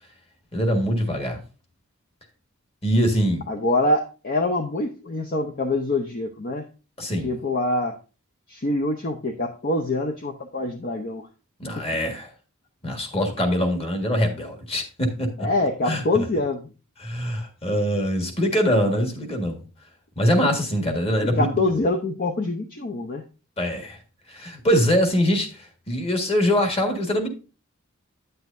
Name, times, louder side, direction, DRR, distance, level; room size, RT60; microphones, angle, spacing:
voice 1, 0.5-1.4 2.8-3.5 7.0-7.3 11.6-12.3 12.8-15.5 15.8-16.3 17.0-19.6 20.2-21.7 23.6-24.0 24.3-27.3, equal, 30° left, 1.6 m, -23 dB
voice 2, 3.5-6.6 7.2-7.9 8.5-11.3 15.4-16.6 21.2-23.2, left 2 dB, 45° left, 0.7 m, -25 dB
9.1 x 7.8 x 2.6 m
head